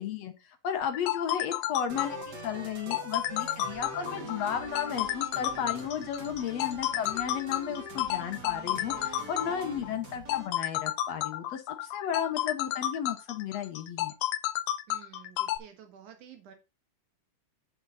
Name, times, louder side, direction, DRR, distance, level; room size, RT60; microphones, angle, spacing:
voice 1, 0.0-14.1, left 8 dB, 70° left, 8 dB, 1.8 m, -34 dB
sound 1, 0.8-15.6, left 14 dB, 85° left, 2.1 m, -32 dB
sound 2, 1.9-10.5, right 2 dB, 35° right, 2.1 m, -43 dB
voice 2, 9.7-10.1 14.9-16.5, right 9 dB, 80° right, 6 dB, 3.0 m, -51 dB
7.8 x 7.3 x 4.0 m, 0.27 s
omnidirectional pair, 3.5 m